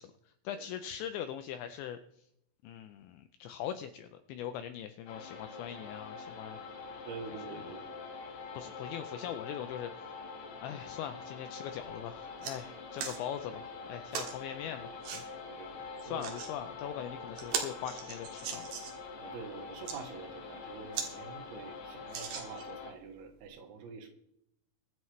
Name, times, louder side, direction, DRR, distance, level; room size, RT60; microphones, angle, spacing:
voice 1, 0.0-2.2 2.6-6.6 7.5-7.7 8.6-10.1 10.6-15.2 16.0-18.7, left 10 dB, 85° left, 9 dB, 2.5 m, -41 dB
sound 1, 5.1-22.9, left 4 dB, 60° left, 2.0 m, -45 dB
voice 2, 7.1-7.9 15.5-16.3 19.2-24.1, right 5 dB, 85° right, 3 dB, 4.5 m, -46 dB
sound 2, 11.7-11.9 12.2-12.6 13.0-13.2 14.1-14.4 15.0-15.2 16.0-16.5 17.0-17.1 17.4-19.0 19.7-20.0 20.5-20.6 20.9-21.1 21.5-21.6 22.1-22.8 23.5-23.6, right 7 dB, 65° right, 3.4 m, -38 dB
23.5 x 9.1 x 3.2 m, 0.76 s
omnidirectional pair, 5.9 m